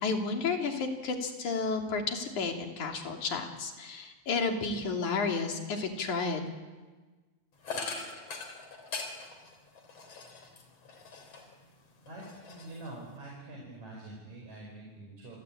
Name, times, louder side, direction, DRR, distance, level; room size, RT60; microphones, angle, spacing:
voice 1, 0.0-6.5, left 4 dB, 75° left, 3 dB, 4.4 m, -32 dB
sound 1, 7.6-11.6 12.0-13.2, left 4 dB, 55° left, 4.7 m, -41 dB
voice 2, 12.1-15.4, right 2 dB, 65° right, -2 dB, 6.6 m, -45 dB
29.5 x 23.0 x 8.7 m, 1.3 s
omnidirectional pair, 3.4 m